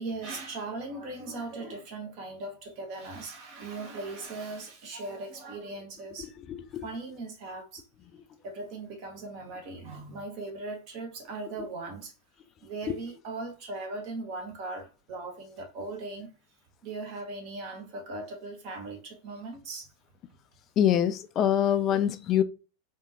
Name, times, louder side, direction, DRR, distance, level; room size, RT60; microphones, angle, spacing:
voice 1, 0.0-6.3 6.8-7.8 8.4-12.1 12.6-16.3 16.8-19.9, right 3 dB, 45° right, 1.0 m, -39 dB
voice 2, 6.2-6.9 12.9-13.0 20.8-22.4, left 10 dB, 30° left, 0.3 m, -25 dB
3.5 x 2.6 x 2.8 m
figure-of-eight pair, 90°, 0 cm